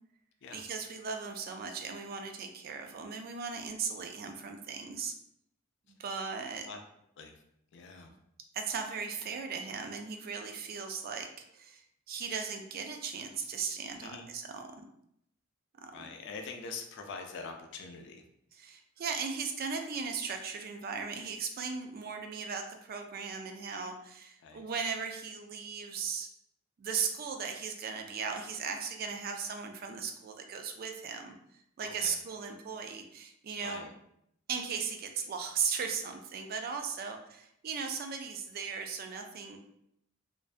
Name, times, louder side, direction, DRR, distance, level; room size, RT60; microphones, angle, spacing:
voice 1, 0.5-5.1 5.9-6.7 8.5-14.6 15.8-16.1 18.6-26.3 26.8-31.3 31.8-33.9 34.5-39.6, right 6 dB, 45° right, 5 dB, 0.3 m, -37 dB
voice 2, 7.7-8.1 14.0-14.3 15.9-18.2 24.4-24.6 31.8-32.2 33.5-33.9, left 4 dB, 60° left, 4 dB, 0.4 m, -44 dB
2.5 x 2.2 x 2.4 m, 0.75 s
head